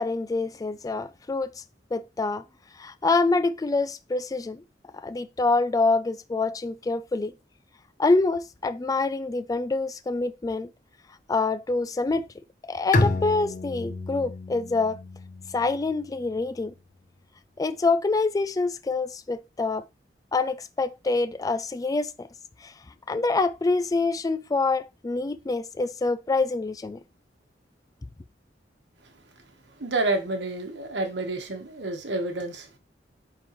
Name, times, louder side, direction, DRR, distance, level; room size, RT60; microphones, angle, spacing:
voice 1, 0.0-1.5 1.9-2.4 2.8-4.6 4.9-7.3 8.0-10.7 11.3-12.3 12.7-15.0 15.5-16.7 17.6-19.9 20.3-22.3 22.6-22.7 23.1-27.0, left 3 dB, 20° left, 0.3 m, -26 dB
Bowed string instrument, 12.9-16.4, left 2 dB, 45° left, 0.7 m, -29 dB
voice 2, 29.8-32.8, right 2 dB, 80° right, 1.3 m, -29 dB
8.9 x 3.8 x 3.0 m
head